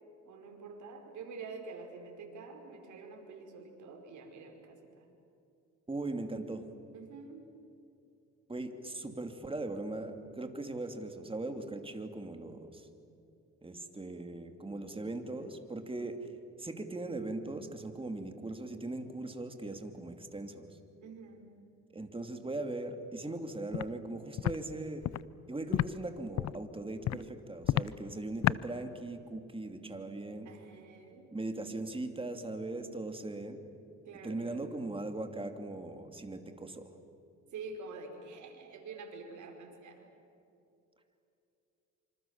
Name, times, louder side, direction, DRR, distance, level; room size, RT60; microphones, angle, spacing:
voice 1, 0.2-5.1 6.9-7.5 21.0-21.4 30.4-31.2 34.0-34.7 37.5-40.1, right 4 dB, 75° right, 2 dB, 5.1 m, -47 dB
voice 2, 5.9-6.7 8.5-12.9 13.6-16.3 16.6-20.8 21.9-25.0 25.5-30.5 31.3-33.6 34.2-36.9, right 2 dB, 15° right, 6 dB, 2.8 m, -39 dB
Walk footsteps, 23.7-23.9 24.4-24.6 25.0-25.2 25.7-25.9 26.3-26.6 27.0-27.2 27.6-27.9 28.4-28.6, left 13 dB, 65° left, 0.6 m, -29 dB
26.5 x 26.0 x 7.3 m, 2.7 s
cardioid pair, 90°, 30 cm